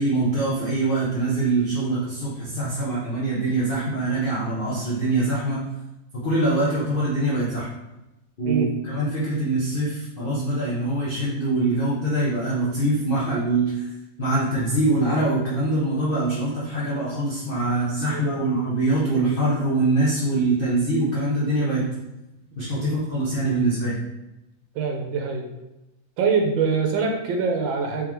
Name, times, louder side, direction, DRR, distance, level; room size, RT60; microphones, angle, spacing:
voice 1, 0.0-5.6 6.1-7.7 8.4-13.8 14.2-21.9 22.6-24.0, right 2 dB, 50° left, -7 dB, 0.6 m, -23 dB
voice 2, 18.1-18.5 22.8-23.0 24.7-25.5 26.2-28.1, right 5 dB, 85° right, 2 dB, 1.4 m, -24 dB
3.7 x 3.6 x 3.0 m, 0.95 s
omnidirectional pair, 2.0 m